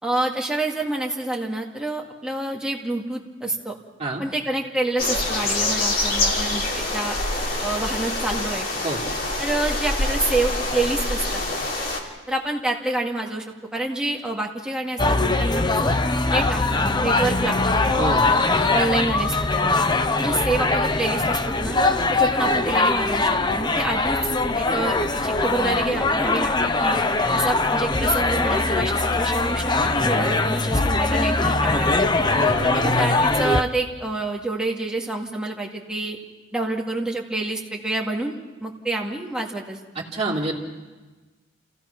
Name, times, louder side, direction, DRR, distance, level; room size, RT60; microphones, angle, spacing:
voice 1, 0.0-3.7 4.2-7.2 7.6-8.7 9.4-11.4 12.3-13.5 13.7-16.0 16.3-17.9 18.6-19.8 20.2-21.8 22.1-24.2 24.5-26.5 26.8-27.0 27.3-32.1 32.6-36.2 36.5-39.8, right 2 dB, 5° right, -1 dB, 2.1 m, -27 dB
sound 1, 5.0-12.0, left 2 dB, 50° left, 2.9 m, -25 dB
sound 2, 15.0-33.6, left 3 dB, 20° left, 0.7 m, -21 dB
voice 2, 32.3-33.0 39.9-40.6, right 2 dB, 35° right, -2 dB, 3.1 m, -27 dB
27.5 x 16.5 x 6.0 m, 1.3 s
head